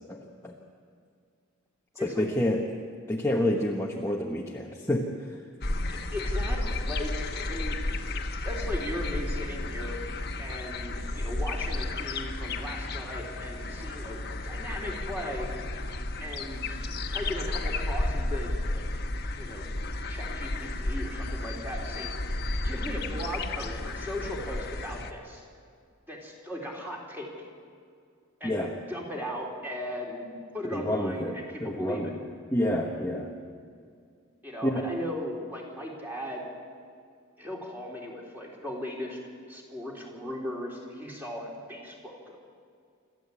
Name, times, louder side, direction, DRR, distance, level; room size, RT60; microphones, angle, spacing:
voice 1, 0.1-0.6 2.0-2.6 3.1-5.4 28.4-28.7 30.6-33.3 34.6-34.9, left 1 dB, 15° left, -1 dB, 1.1 m, -29 dB
voice 2, 2.0-2.3 5.9-8.0 8.4-10.0 10.4-15.5 16.2-16.8 17.1-18.9 19.4-19.6 20.1-25.5 26.1-27.3 28.4-32.2 34.4-36.5 37.4-39.2 39.5-42.4, left 1 dB, 10° right, -2 dB, 3.5 m, -37 dB
sound 1, 5.6-25.1, left 2 dB, 50° left, 1.3 m, -32 dB
27.0 x 13.5 x 8.4 m, 2.3 s
head